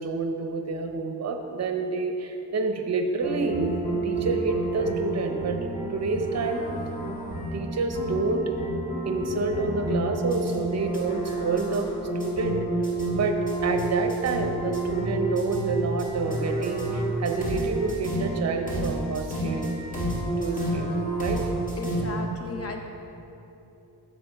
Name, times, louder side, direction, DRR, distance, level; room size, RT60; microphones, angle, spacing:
voice 1, 0.0-6.6 7.5-8.5 9.1-11.9 12.1-12.6 13.1-19.8 20.4-21.4 22.3-22.4, right 3 dB, 45° right, 5 dB, 0.7 m, -28 dB
sound 1, 3.2-22.0, right 1 dB, 20° left, 1.6 m, -30 dB
voice 2, 21.8-22.8, left 2 dB, 40° left, 2 dB, 0.9 m, -35 dB
12.0 x 4.5 x 4.5 m, 2.9 s
wide cardioid pair, 170°, 38 cm